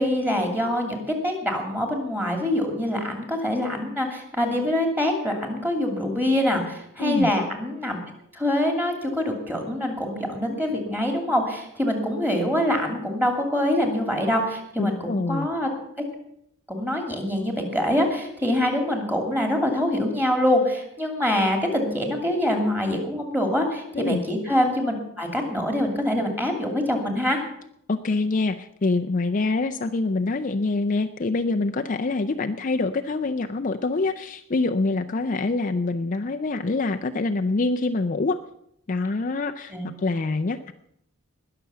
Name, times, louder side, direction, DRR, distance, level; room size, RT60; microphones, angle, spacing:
voice 1, 0.0-8.0 8.3-15.7 16.7-27.4 39.7-39.9, left 1 dB, 10° right, 3 dB, 2.6 m, -25 dB
voice 2, 7.0-7.3 14.8-15.5 23.9-24.2 27.9-38.4 38.9-40.7, left 3 dB, 35° left, 6 dB, 0.5 m, -25 dB
20.0 x 6.8 x 6.9 m, 0.75 s
head